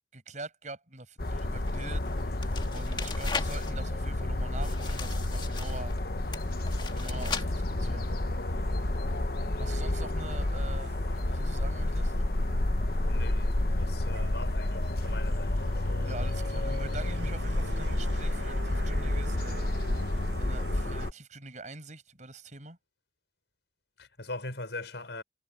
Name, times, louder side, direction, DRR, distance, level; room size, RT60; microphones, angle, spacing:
voice 1, 0.1-5.9 6.9-8.1 9.6-12.1 16.0-20.0 20.4-22.8, right 2 dB, 45° right, 7.1 m, -44 dB
sound 1, 1.2-21.1, left 1 dB, 55° left, 1.1 m, -30 dB
sound 2, 1.2-3.7 4.6-6.0 6.3-7.5, left 5 dB, 25° left, 1.8 m, -38 dB
Motor vehicle (road), 6.3-21.1, right 2 dB, 90° right, 7.8 m, -48 dB
voice 2, 13.1-15.8 24.0-25.2, left 2 dB, 85° left, 5.5 m, -41 dB
head